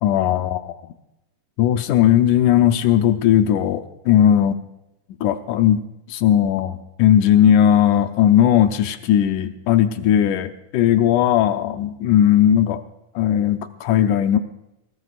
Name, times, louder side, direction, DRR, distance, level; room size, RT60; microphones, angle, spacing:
voice 1, 0.0-0.7 1.6-4.6 5.2-5.8 6.1-12.8 13.2-14.4, left 10 dB, 85° left, 8 dB, 2.3 m, -17 dB
22.0 x 19.5 x 2.4 m, 0.87 s
omnidirectional pair, 3.5 m